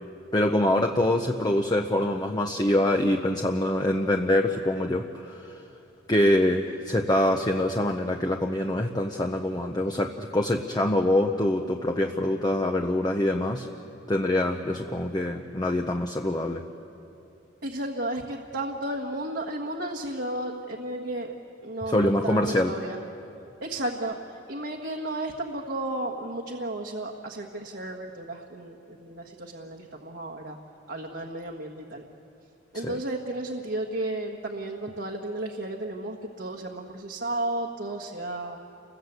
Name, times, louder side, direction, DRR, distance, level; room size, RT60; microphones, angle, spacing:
voice 1, 0.3-5.6 6.1-13.7 14.1-16.6 21.9-22.7 32.8-33.0, left 1 dB, 20° left, 3 dB, 0.9 m, -25 dB
voice 2, 17.6-21.3 21.6-23.0 23.6-30.6 30.9-32.0 32.7-38.6, right 1 dB, 65° right, 0 dB, 1.6 m, -33 dB
29.5 x 21.5 x 8.1 m, 2.8 s
head